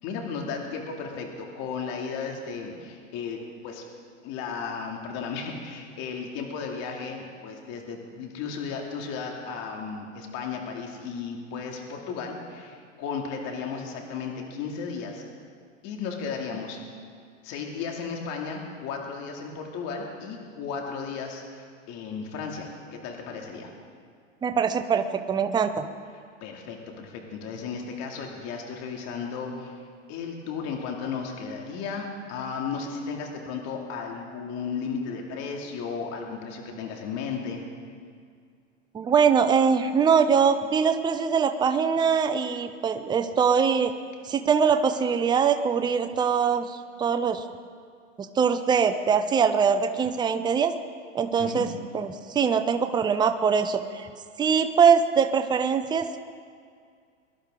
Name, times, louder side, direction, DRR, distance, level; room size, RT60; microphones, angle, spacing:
voice 1, 0.0-3.8 4.2-15.2 15.8-16.8 17.4-23.7 26.4-29.8 30.1-37.6 51.4-51.7, left 5 dB, 45° left, 1 dB, 2.6 m, -34 dB
voice 2, 24.4-25.9 38.9-43.9 44.2-47.4 48.2-50.7 51.1-51.7 51.9-54.1 54.4-56.2, right 6 dB, 10° right, 8 dB, 0.6 m, -23 dB
23.5 x 11.5 x 3.8 m, 2.1 s
hypercardioid pair, 120°, 38 cm